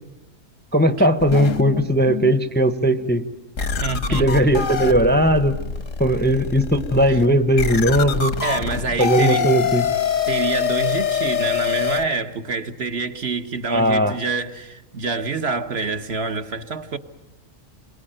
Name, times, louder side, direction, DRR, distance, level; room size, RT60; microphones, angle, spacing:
voice 1, 0.7-3.2 4.1-5.6 6.0-8.4 9.0-9.9 13.7-14.2, equal, 10° left, 0.8 m, -18 dB
sound 1, 1.2-2.4 2.9-3.0 3.6-12.0, left 7 dB, 80° left, 1.6 m, -25 dB
voice 2, 3.8-4.5 7.1-7.2 8.4-9.5 10.3-17.0, right 4 dB, 55° right, 1.4 m, -27 dB
28.0 x 23.0 x 9.0 m
omnidirectional pair, 1.3 m